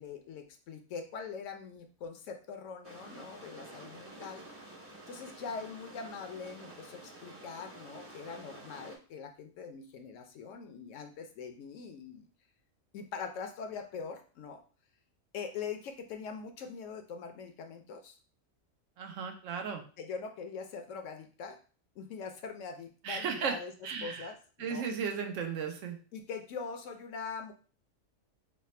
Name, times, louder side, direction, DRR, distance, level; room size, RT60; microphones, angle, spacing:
voice 1, 0.0-4.4 5.1-12.3 12.9-14.6 15.3-18.2 20.0-21.6 22.0-23.7 24.0-24.9 26.1-27.5, left 5 dB, 70° left, 5 dB, 0.9 m, -42 dB
sound 1, 2.8-9.0, right 2 dB, 20° right, 0.4 m, -50 dB
voice 2, 19.0-19.8 23.0-23.6 23.8-24.3 24.6-26.0, right 6 dB, 75° right, 4 dB, 0.9 m, -35 dB
3.2 x 2.0 x 4.2 m, 0.38 s
omnidirectional pair, 1.4 m